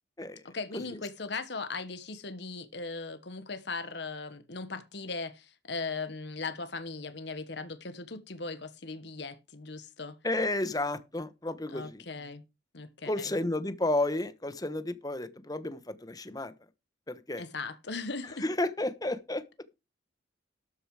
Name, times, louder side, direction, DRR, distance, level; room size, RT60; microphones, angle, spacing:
voice 1, 0.4-10.2 11.7-12.4 12.7-13.3 17.4-18.4, left 3 dB, 65° left, 1.3 m, -38 dB
voice 2, 10.2-12.0 13.1-16.5 17.1-17.4 18.2-19.4, left 2 dB, 20° left, 1.0 m, -32 dB
13.0 x 7.0 x 4.8 m
head